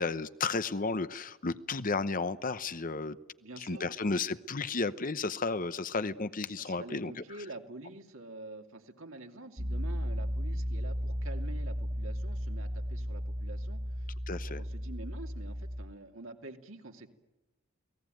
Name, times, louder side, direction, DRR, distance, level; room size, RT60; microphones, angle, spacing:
voice 1, 0.0-3.2 3.6-7.1 14.3-14.6, left 3 dB, 40° left, 13 dB, 0.9 m, -33 dB
voice 2, 3.4-3.9 6.6-14.1 14.5-17.1, right 2 dB, 70° right, 4 dB, 2.8 m, -47 dB
Piano, 9.6-15.9, equal, 35° right, 1.5 m, -35 dB
29.0 x 19.5 x 9.3 m, 1.0 s
head